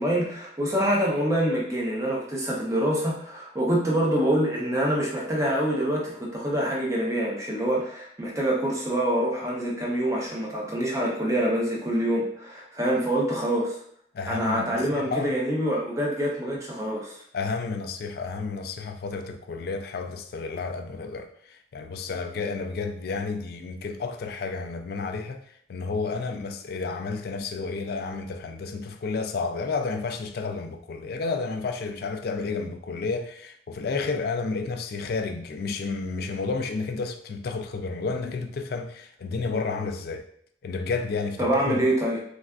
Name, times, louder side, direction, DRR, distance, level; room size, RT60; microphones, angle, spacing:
voice 1, 0.0-13.8 14.3-17.2 41.4-42.2, right 1 dB, 15° right, 0.6 m, -26 dB
voice 2, 14.1-15.3 17.3-25.4 25.7-40.3 40.6-41.8, left 4 dB, 60° left, 0.3 m, -31 dB
3.3 x 2.4 x 2.3 m
head